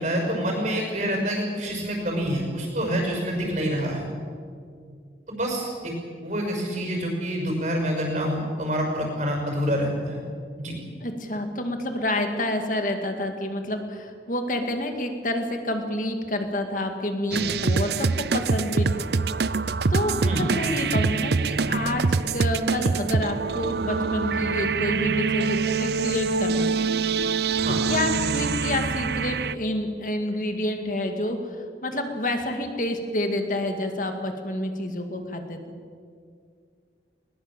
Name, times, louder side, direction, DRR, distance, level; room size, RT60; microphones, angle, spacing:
voice 1, 0.0-4.0 5.3-5.9 6.2-10.2 10.6-10.8 20.2-20.5 27.6-27.8, equal, 40° right, 1 dB, 6.0 m, -27 dB
voice 2, 11.0-19.1 19.9-26.8 27.9-35.6, left 1 dB, 45° left, 5 dB, 2.3 m, -28 dB
sound 1, 17.3-29.5, right 4 dB, 60° right, 0.6 m, -25 dB
21.0 x 20.5 x 7.5 m, 2.2 s
head